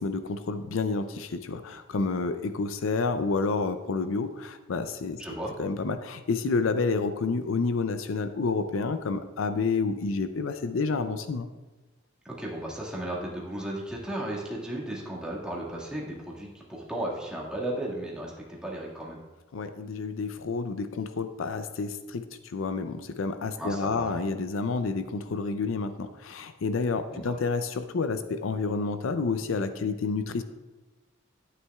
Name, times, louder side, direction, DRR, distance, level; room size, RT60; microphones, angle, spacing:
voice 1, 0.0-5.2 5.6-11.5 19.5-30.4, left 4 dB, 75° left, 10 dB, 0.5 m, -29 dB
voice 2, 5.2-5.5 12.2-18.3 18.6-19.2 23.6-24.2 27.1-27.3, right 1 dB, 5° right, -5 dB, 1.8 m, -35 dB
11.0 x 9.3 x 2.3 m, 1.2 s
head